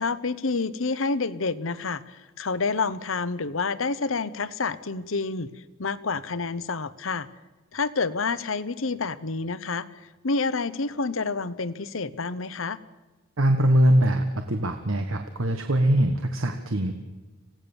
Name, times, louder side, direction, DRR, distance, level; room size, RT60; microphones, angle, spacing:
voice 1, 0.0-5.5 5.8-7.3 7.7-12.8, left 4 dB, 85° left, 15 dB, 0.9 m, -28 dB
voice 2, 13.4-16.9, right 1 dB, 90° right, 6 dB, 1.4 m, -22 dB
26.0 x 17.0 x 7.1 m, 1.2 s
head